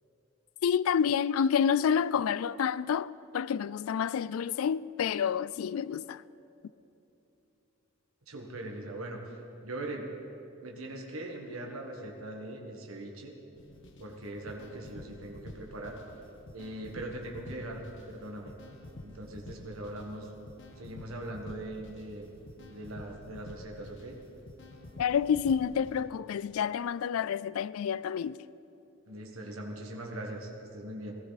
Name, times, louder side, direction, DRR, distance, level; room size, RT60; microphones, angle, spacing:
voice 1, 0.6-6.2 25.0-28.4, left 7 dB, 75° left, 0.3 m, -29 dB
voice 2, 8.3-10.1 10.6-13.3 14.0-16.0 16.5-18.5 19.0-20.3 20.8-22.3 22.7-24.2 29.1-31.1, right 1 dB, 75° right, 1.5 m, -41 dB
sound 1, 13.6-26.0, left 1 dB, 60° left, 1.2 m, -49 dB
17.5 x 15.0 x 4.1 m
head